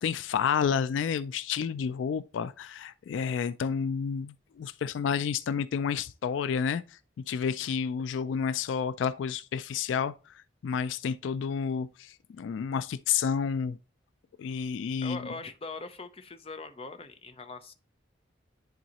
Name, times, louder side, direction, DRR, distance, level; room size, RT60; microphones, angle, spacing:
voice 1, 0.0-7.0 7.3-13.8 14.4-15.2, left 7 dB, 75° left, 0.3 m, -30 dB
voice 2, 15.0-17.7, left 3 dB, 30° left, 0.6 m, -41 dB
10.5 x 3.8 x 2.9 m
head